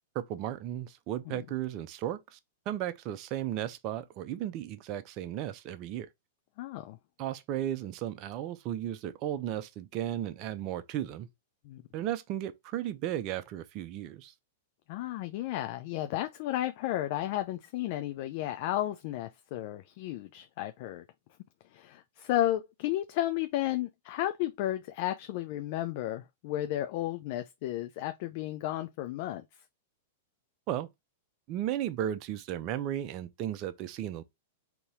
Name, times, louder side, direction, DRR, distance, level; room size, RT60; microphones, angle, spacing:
voice 1, 0.1-2.4 2.7-6.1 7.2-11.3 11.9-14.3 30.7-30.9 31.5-34.2, right 11 dB, 40° right, 0.6 m, -35 dB
voice 2, 6.6-7.0 11.6-11.8 14.9-21.0 21.7-29.4, left 14 dB, 45° left, 0.4 m, -33 dB
4.0 x 3.0 x 3.4 m
figure-of-eight pair, 100°, 0 cm